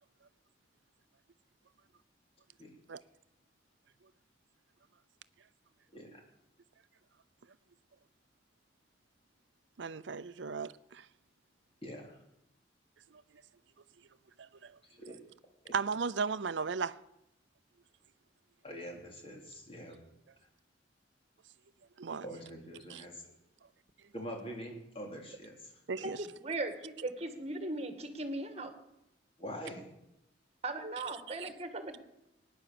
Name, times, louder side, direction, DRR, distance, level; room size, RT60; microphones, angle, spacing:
voice 1, 5.9-6.2 11.8-12.2 14.8-15.2 15.6-15.7 18.6-20.0 22.2-23.2 24.1-26.1 29.4-29.9, equal, 30° left, 3.3 m, -45 dB
voice 2, 9.8-11.1 13.1-13.2 14.4-14.7 15.7-17.0 22.0-22.2 22.9-23.0 25.9-26.3 31.3-31.5, right 5 dB, 80° right, 0.6 m, -36 dB
voice 3, 26.0-28.7 30.6-32.0, right 2 dB, 35° right, 1.7 m, -38 dB
18.0 x 10.0 x 6.8 m
head